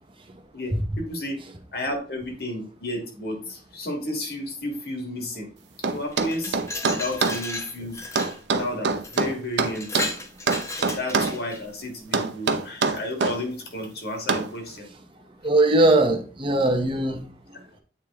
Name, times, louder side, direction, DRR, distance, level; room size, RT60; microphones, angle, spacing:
voice 1, 0.5-1.4 1.7-5.5 5.9-6.6 6.8-8.0 8.5-10.1 10.9-14.9, left 1 dB, 60° left, 1.6 m, -32 dB
sound 1, 5.8-7.4 8.2-10.1 10.5-11.4 12.1-13.4 14.3-14.5, right 4 dB, 75° right, 0.7 m, -24 dB
Glass, 6.1-8.4 9.0-9.2 9.6-11.6, left 2 dB, 15° left, 0.7 m, -34 dB
voice 2, 15.4-17.8, right 2 dB, 30° right, 0.9 m, -21 dB
8.5 x 3.2 x 3.5 m
head